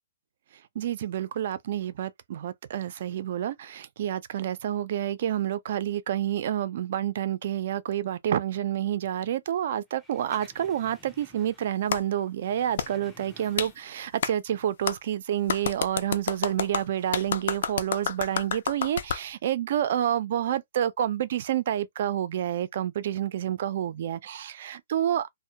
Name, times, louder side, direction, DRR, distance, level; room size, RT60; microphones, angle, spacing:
voice 1, 0.8-25.3, right 11 dB, 55° right, 0.4 m, -29 dB
sound 1, 9.9-11.8 12.1-14.1 14.5-14.6, left 1 dB, ahead, 0.5 m, -54 dB
Clapping, 11.9-12.0 12.8-12.9 13.6-13.7 14.2-14.3 14.9-15.0 15.5-19.2, left 7 dB, 65° left, 0.4 m, -29 dB
2.1 x 2.1 x 2.7 m
hypercardioid pair, 160°, 0 cm